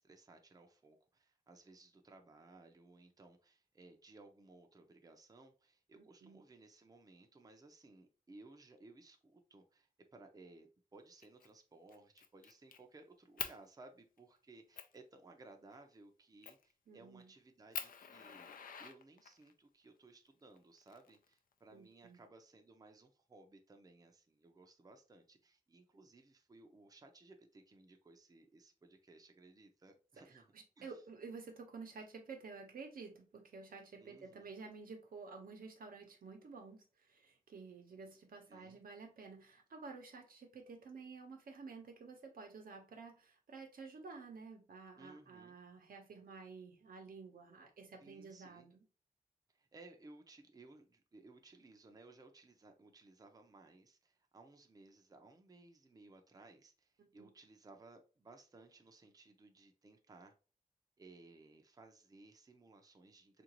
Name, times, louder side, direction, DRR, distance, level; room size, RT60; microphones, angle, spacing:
voice 1, 0.0-18.5 18.8-30.5 30.8-31.0 34.0-34.5 38.5-38.8 45.0-45.5 48.0-48.7 49.5-60.3 61.0-63.4, right 2 dB, 25° right, 0.5 m, -60 dB
voice 2, 6.0-6.4 16.9-17.3 21.7-22.2 30.5-48.8 57.0-57.3, right 4 dB, 85° right, 0.9 m, -52 dB
Fire, 11.2-11.5 11.9-12.8 13.4-13.6 14.2-14.3 14.8-15.0 16.4-16.7 17.2-17.3 17.7-19.5 20.6-21.5, left 7 dB, 85° left, 0.4 m, -45 dB
3.7 x 2.5 x 2.9 m
wide cardioid pair, 110°, 14 cm